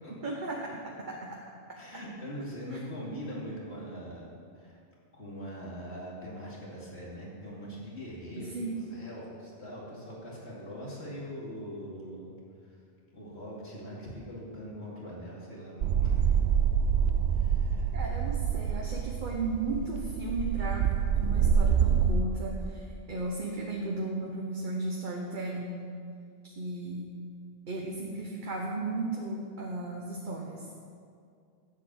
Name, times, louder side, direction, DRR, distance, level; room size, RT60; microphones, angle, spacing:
voice 1, 0.2-1.4 8.5-8.8 17.9-20.8 21.1-25.8 26.4-27.1 27.7-30.6, right 2 dB, 50° right, -1 dB, 1.1 m, -35 dB
voice 2, 1.8-4.8 5.1-12.3 12.6-12.8 13.1-16.4 17.3-17.9 18.3-18.9, equal, 80° left, -5 dB, 3.0 m, -42 dB
sound 1, 15.8-22.1, right 7 dB, 80° right, 0.9 m, -26 dB
9.9 x 7.6 x 7.7 m, 2.3 s
omnidirectional pair, 1.1 m